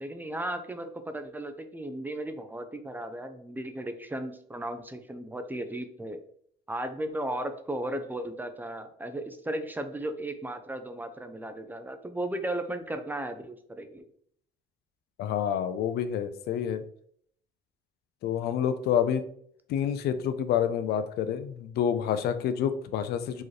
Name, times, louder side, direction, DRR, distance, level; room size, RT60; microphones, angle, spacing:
voice 1, 0.0-6.2 6.7-14.0, right 1 dB, 10° right, 8 dB, 0.4 m, -35 dB
voice 2, 15.2-16.8 18.2-19.2 19.7-23.4, left 8 dB, 70° left, 11 dB, 0.5 m, -28 dB
4.6 x 3.0 x 3.1 m, 0.63 s
cardioid pair, 110°, 17 cm